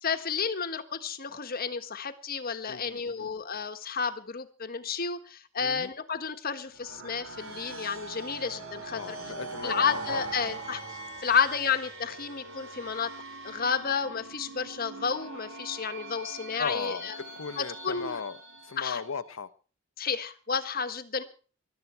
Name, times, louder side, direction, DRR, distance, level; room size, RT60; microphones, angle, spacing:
voice 1, 0.0-9.2 9.6-10.8 11.2-13.1 13.4-17.1 17.6-18.2 18.8-19.0 20.0-21.2, left 6 dB, 45° left, 9 dB, 1.4 m, -31 dB
voice 2, 2.7-3.3 5.6-5.9 8.9-10.3 16.6-18.4 18.6-19.5, left 5 dB, 80° left, 13 dB, 0.9 m, -37 dB
sound 1, 6.7-19.2, right 2 dB, 80° right, 3.5 m, -42 dB
21.0 x 12.5 x 4.5 m, 0.39 s
head